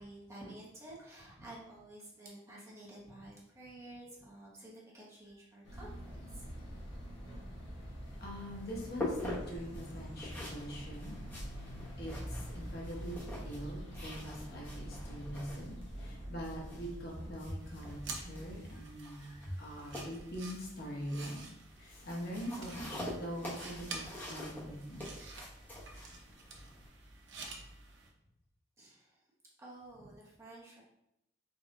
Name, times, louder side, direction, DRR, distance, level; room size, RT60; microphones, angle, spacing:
voice 1, 0.0-6.5 15.1-15.4 18.7-18.8 19.2-20.0 27.3-27.4 28.8-29.2 29.6-30.8, right 1 dB, 15° right, -5 dB, 0.9 m, -52 dB
Via Rockfeller, 5.6-18.6, equal, 80° left, 1.1 m, -45 dB
sound 1, 8.0-26.9, left 1 dB, 10° left, 1.1 m, -46 dB
voice 2, 8.2-11.1 11.5-11.7 12.0-21.4 21.8-25.1, equal, 55° left, -3 dB, 1.0 m, -43 dB
sound 2, 17.6-28.1, right 3 dB, 65° right, 0.7 m, -49 dB
4.0 x 2.6 x 3.6 m, 0.82 s
head